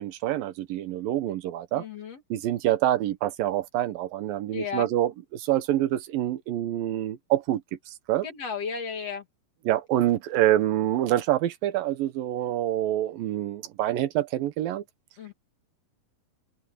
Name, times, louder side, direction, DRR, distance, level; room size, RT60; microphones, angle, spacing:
voice 1, 0.0-1.8 2.3-7.6 8.1-8.3 9.7-14.8, right 13 dB, 80° right, 2.8 m, -26 dB
voice 2, 1.7-2.2 4.5-4.9 8.2-9.2 15.2-15.3, left 5 dB, 50° left, 2.6 m, -33 dB
open air
omnidirectional pair, 4.1 m